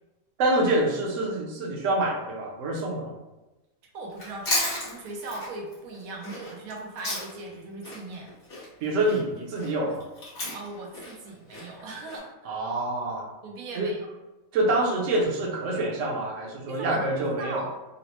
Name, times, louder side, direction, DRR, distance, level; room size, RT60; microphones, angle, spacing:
voice 1, 0.4-3.1 8.8-10.0 12.4-13.3 13.7-14.0 14.5-17.6, right 2 dB, 65° right, -1 dB, 1.0 m, -26 dB
voice 2, 3.9-8.3 10.5-12.6 13.4-14.1 16.7-17.7, right 2 dB, 90° right, 0 dB, 1.1 m, -38 dB
Chewing mastication, 4.1-7.5 7.8-12.2, left 1 dB, 90° left, 1.7 m, -34 dB
4.0 x 2.0 x 2.8 m, 1.0 s
omnidirectional pair, 1.5 m